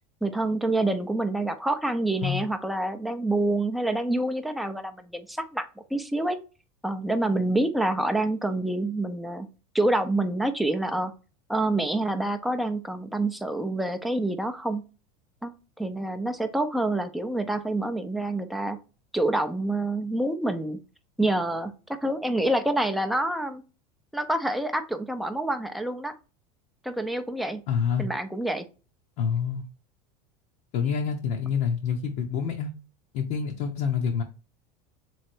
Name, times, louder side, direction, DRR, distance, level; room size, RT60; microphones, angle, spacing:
voice 1, 0.2-6.4 6.8-9.5 9.7-11.1 11.5-14.8 15.4-15.5 15.8-18.8 19.1-20.8 21.2-23.6 24.1-26.1 26.8-27.6 28.0-28.7, right 2 dB, ahead, 0.5 m, -27 dB
voice 2, 27.7-28.1 29.2-29.6 30.7-32.7 33.1-34.2, left 7 dB, 55° left, 0.8 m, -27 dB
3.6 x 3.2 x 4.4 m
supercardioid pair, 125°, 20 cm